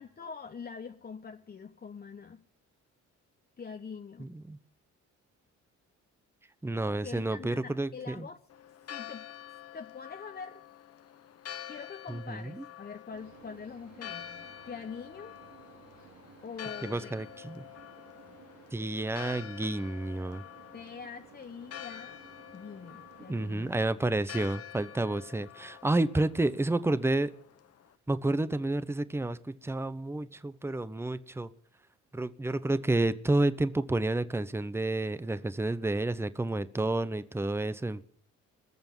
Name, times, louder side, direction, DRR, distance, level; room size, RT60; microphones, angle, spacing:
voice 1, 0.0-2.4 3.6-4.3 7.0-8.4 8.9-9.2 9.7-10.6 11.7-15.3 16.4-17.3 20.7-22.2 22.5-23.7, left 5 dB, 30° left, 1.1 m, -44 dB
voice 2, 4.2-4.6 6.6-8.3 12.1-12.6 16.8-17.6 18.7-20.4 23.3-27.3 28.1-31.5 32.1-38.0, right 2 dB, 10° right, 0.9 m, -30 dB
Church bell, 8.5-27.9, left 10 dB, 55° left, 1.1 m, -47 dB
sound 1, 13.1-23.8, right 7 dB, 75° right, 2.9 m, -56 dB
20.5 x 7.0 x 9.7 m
cardioid pair, 90°, 30 cm